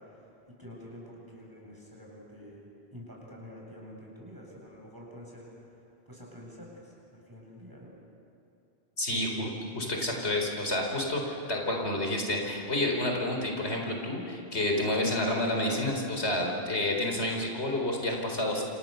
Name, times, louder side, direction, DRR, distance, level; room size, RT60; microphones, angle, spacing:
voice 1, 0.0-2.7 2.9-5.8 6.1-7.9, equal, 20° right, -3 dB, 7.6 m, -48 dB
voice 2, 9.0-18.6, left 1 dB, 90° left, 1 dB, 4.4 m, -29 dB
28.5 x 27.5 x 6.9 m, 2.8 s
omnidirectional pair, 1.1 m